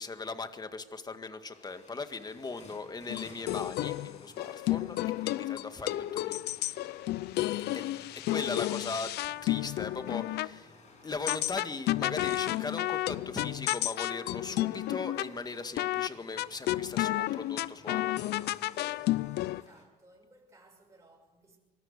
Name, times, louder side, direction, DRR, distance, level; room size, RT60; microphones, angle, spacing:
voice 1, 0.0-6.4 7.7-7.8 8.3-9.2 9.4-18.5 18.8-19.0, left 4 dB, 25° left, 1.9 m, -39 dB
sound 1, 1.3-19.8, left 3 dB, 45° left, 7.5 m, -56 dB
sound 2, 3.1-10.5 11.3-15.3 15.8-16.1 16.4-19.6, left 16 dB, 75° left, 0.6 m, -31 dB
voice 2, 5.3-5.9 19.5-21.6, right 2 dB, 15° right, 6.4 m, -61 dB
24.5 x 20.5 x 6.7 m
cardioid pair, 110°, 17 cm